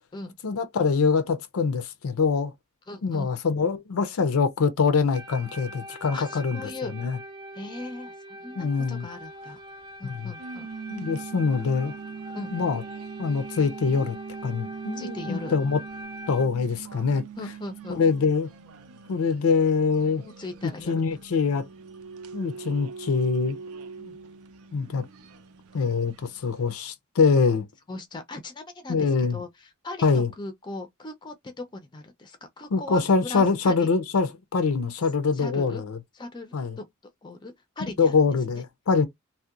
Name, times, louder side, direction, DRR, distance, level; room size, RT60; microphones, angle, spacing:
voice 1, 0.4-2.5 3.0-7.2 8.6-9.1 10.0-10.3 10.9-11.9 12.5-12.8 13.2-14.2 14.4-15.8 16.3-17.2 17.9-18.5 19.1-20.2 20.6-21.7 22.3-23.6 24.7-25.1 25.7-27.7 28.9-29.4 30.0-30.3 32.7-36.0 36.5-36.8 38.0-39.1, left 5 dB, 85° left, 0.5 m, -24 dB
voice 2, 2.9-3.3 6.1-6.9 7.5-9.6 10.0-10.7 12.3-12.6 15.0-15.6 17.4-18.0 20.2-20.9 24.0-24.2 27.9-33.9 35.3-35.8 36.1-36.8 37.2-38.1, left 2 dB, 20° left, 0.4 m, -39 dB
sound 1, 5.1-16.4, equal, 25° right, 0.5 m, -42 dB
sound 2, 9.0-26.7, right 6 dB, 90° right, 0.5 m, -42 dB
2.7 x 2.1 x 2.3 m
head